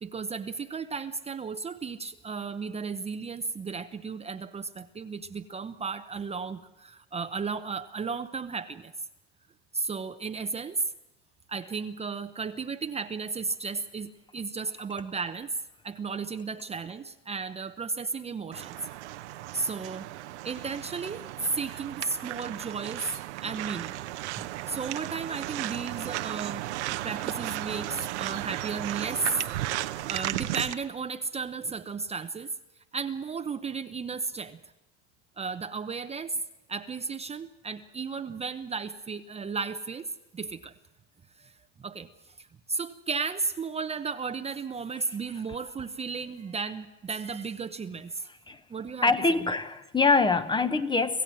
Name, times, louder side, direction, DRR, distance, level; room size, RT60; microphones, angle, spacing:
voice 1, 0.0-8.9 9.7-10.8 11.5-15.6 15.8-18.8 19.5-20.1 20.4-23.9 24.4-29.5 30.1-32.5 32.9-34.6 35.4-36.4 36.7-40.7 41.4-41.5 41.8-42.1 42.4-48.3 48.7-49.1 49.4-49.5, right 4 dB, 20° right, 0.8 m, -34 dB
sound 1, 18.5-30.7, right 15 dB, 80° right, 1.0 m, -35 dB
voice 2, 49.0-51.2, left 3 dB, 15° left, 1.0 m, -24 dB
26.5 x 15.5 x 7.6 m
supercardioid pair, 105°, 34 cm